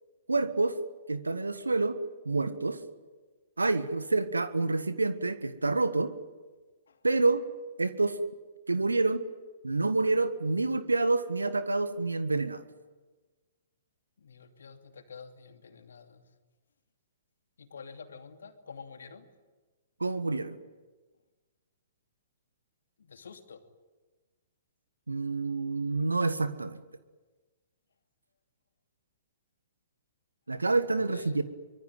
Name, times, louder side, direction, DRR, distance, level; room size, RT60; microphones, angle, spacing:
voice 1, 0.3-0.8 1.1-2.0 2.2-2.8 3.6-6.1 7.0-7.5 7.8-8.2 8.7-9.2 9.6-12.6 20.0-20.6 25.1-26.8 30.5-31.4, right 3 dB, 75° right, 13 dB, 1.5 m, -28 dB
voice 2, 14.2-16.2 17.6-19.3 23.0-23.6 31.0-31.4, left 5 dB, 65° left, 6 dB, 2.7 m, -48 dB
24.5 x 23.0 x 9.3 m, 1.3 s
figure-of-eight pair, 115°, 0 cm